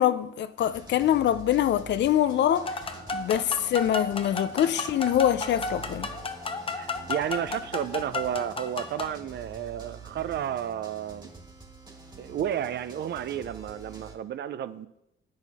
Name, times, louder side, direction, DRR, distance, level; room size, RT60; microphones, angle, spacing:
voice 1, 0.0-2.8 3.1-6.1, left 11 dB, 65° left, 0.5 m, -24 dB
sound 1, 0.6-14.2, right 4 dB, 20° right, 1.7 m, -47 dB
sound 2, 2.5-9.1, left 3 dB, 25° left, 0.8 m, -34 dB
voice 2, 6.8-11.3 12.2-14.9, right 10 dB, 60° right, 0.5 m, -32 dB
8.9 x 6.4 x 4.2 m
cardioid pair, 90°, 20 cm